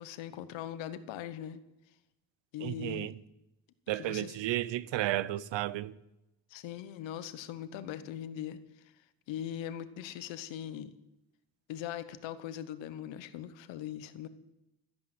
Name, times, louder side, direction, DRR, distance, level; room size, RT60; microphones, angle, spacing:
voice 1, 0.0-1.6 2.5-3.1 3.9-4.4 6.5-8.6 9.3-10.9 11.7-14.3, left 10 dB, 90° left, 1.1 m, -40 dB
voice 2, 2.6-3.1 3.9-6.0, right 14 dB, 80° right, 0.8 m, -33 dB
14.0 x 11.0 x 7.8 m
supercardioid pair, 50°, 44 cm